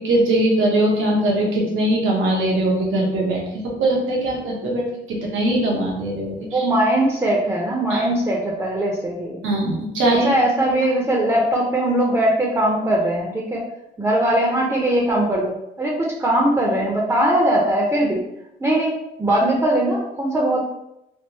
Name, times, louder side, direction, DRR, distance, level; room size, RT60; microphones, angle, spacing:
voice 1, 0.0-6.6 7.9-8.0 9.4-10.4, right 1 dB, 85° right, -2 dB, 1.1 m, -21 dB
voice 2, 6.5-9.4 10.2-13.7 14.0-18.2 18.6-20.6, right 1 dB, 10° right, -2 dB, 0.7 m, -20 dB
3.4 x 2.5 x 2.9 m, 0.86 s
cardioid pair, 90°, 20 cm